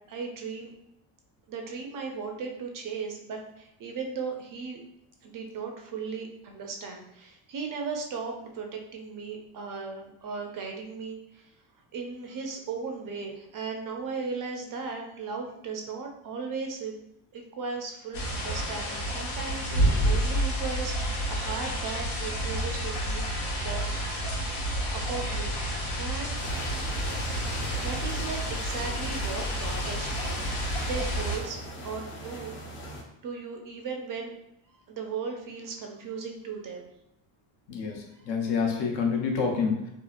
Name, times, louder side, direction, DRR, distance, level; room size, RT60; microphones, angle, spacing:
voice 1, 0.1-0.7 1.5-4.8 5.2-11.5 11.9-16.9 17.3-23.2 23.6-23.9 24.6-25.5 26.0-26.4 27.4-30.5 30.8-32.6 33.2-34.4 34.7-36.9, right 5 dB, 45° right, 2 dB, 0.4 m, -37 dB
sound 1, 18.1-31.4, equal, 85° left, 1.1 m, -30 dB
sound 2, 26.4-33.0, right 1 dB, 30° left, 0.4 m, -40 dB
voice 2, 37.7-39.9, left 5 dB, 65° left, 2 dB, 0.7 m, -28 dB
2.8 x 2.4 x 2.4 m, 0.82 s
cardioid pair, 125°, 48 cm